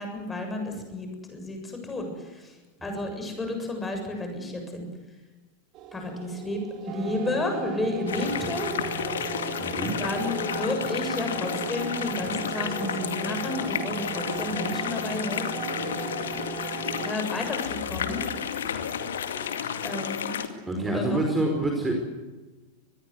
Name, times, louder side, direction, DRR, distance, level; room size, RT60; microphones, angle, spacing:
voice 1, 0.0-2.6 2.8-4.9 5.9-8.8 9.2-15.7 16.7-18.3 19.8-20.4 20.8-21.2, left 2 dB, 15° left, 4 dB, 7.3 m, -32 dB
sound 1, 5.7-17.1, right 8 dB, 35° right, 2.8 m, -37 dB
sound 2, 8.1-20.5, left 8 dB, 65° left, 2.2 m, -31 dB
voice 2, 9.6-10.0 20.7-21.9, right 2 dB, 10° right, 2 dB, 4.9 m, -26 dB
24.5 x 21.0 x 8.1 m, 1.2 s
figure-of-eight pair, 90°, 0 cm